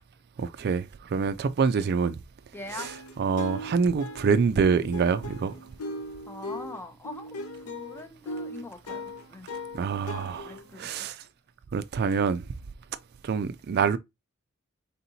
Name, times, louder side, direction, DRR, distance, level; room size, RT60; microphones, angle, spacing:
voice 1, 0.4-2.2 2.7-5.5 9.7-11.2 11.7-12.4 13.2-14.0, right 5 dB, 45° right, 0.3 m, -26 dB
voice 2, 2.5-2.9 6.3-7.4 7.6-9.5 10.5-11.0, left 2 dB, 10° left, 0.7 m, -42 dB
sound 1, 2.8-10.9, left 1 dB, 90° left, 0.7 m, -39 dB
4.2 x 3.7 x 2.6 m
head